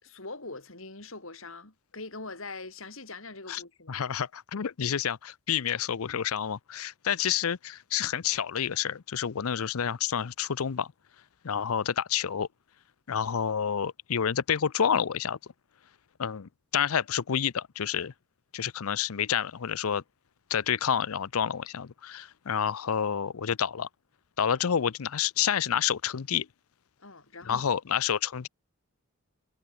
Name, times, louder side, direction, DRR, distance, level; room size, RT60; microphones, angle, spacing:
voice 1, 0.0-4.0 27.0-27.7, left 3 dB, 70° left, 4.5 m, -43 dB
voice 2, 3.9-10.9 11.4-12.5 13.1-15.4 16.2-18.1 18.5-20.0 20.5-23.9 24.4-26.5 27.5-28.5, left 8 dB, 90° left, 0.6 m, -29 dB
head